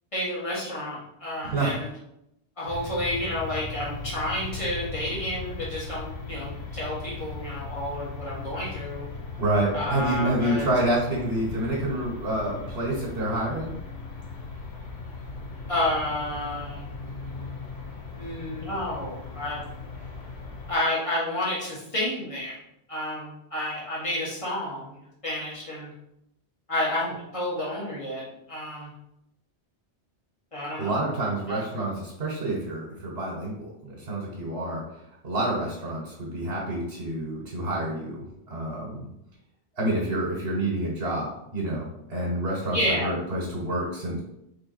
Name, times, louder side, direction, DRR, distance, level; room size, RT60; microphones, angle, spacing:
voice 1, 0.1-1.9 2.6-9.1 9.7-10.6 15.7-16.8 18.2-19.7 20.7-22.6 22.9-24.9 25.2-25.9 26.7-28.9 30.5-31.0 31.5-31.6 42.7-43.1, left 1 dB, 30° left, -7 dB, 1.7 m, -30 dB
voice 2, 1.4-1.8 9.4-13.7 30.8-34.8 35.2-39.1 39.8-44.2, right 1 dB, 70° right, -3 dB, 1.3 m, -28 dB
sound 1, 2.7-20.7, left 4 dB, 75° left, 1.1 m, -38 dB
3.7 x 3.3 x 4.1 m, 0.82 s
omnidirectional pair, 1.1 m